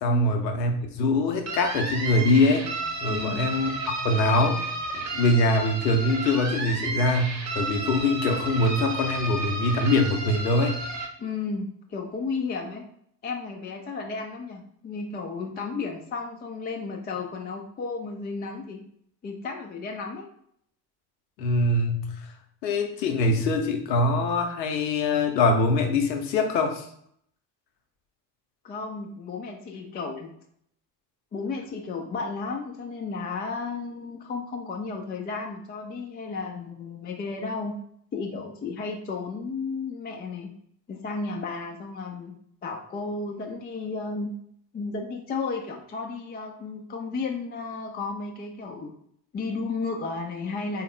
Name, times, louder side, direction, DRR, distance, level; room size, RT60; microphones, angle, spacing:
voice 1, 0.0-2.7 3.0-3.7 4.0-4.6 4.9-10.7 21.4-22.1 22.6-26.9, left 2 dB, 80° left, 4 dB, 0.7 m, -23 dB
sound 1, 1.5-11.1, right 2 dB, 35° right, 0.8 m, -32 dB
voice 2, 3.1-3.4 11.2-12.9 13.2-18.8 19.2-20.3 28.6-30.3 31.3-37.8 38.1-40.5 40.9-42.3 42.6-44.3 44.7-48.9 49.3-50.8, left 4 dB, 20° left, 2 dB, 0.4 m, -33 dB
3.7 x 2.1 x 3.6 m, 0.67 s
figure-of-eight pair, 50°, 50 cm